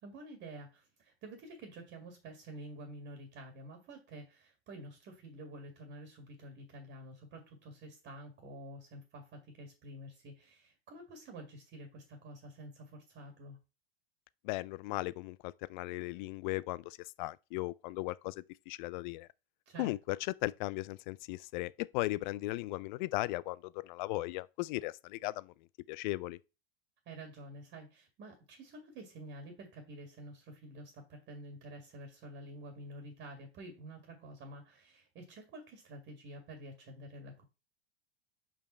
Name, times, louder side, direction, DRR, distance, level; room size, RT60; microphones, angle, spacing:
voice 1, 0.0-13.6 19.7-19.9 27.1-37.4, right 1 dB, 40° right, 2.1 m, -49 dB
voice 2, 14.4-19.3 19.8-25.5 25.9-26.4, left 20 dB, 50° left, 0.4 m, -37 dB
5.4 x 5.1 x 4.3 m
hypercardioid pair, 90°, 31 cm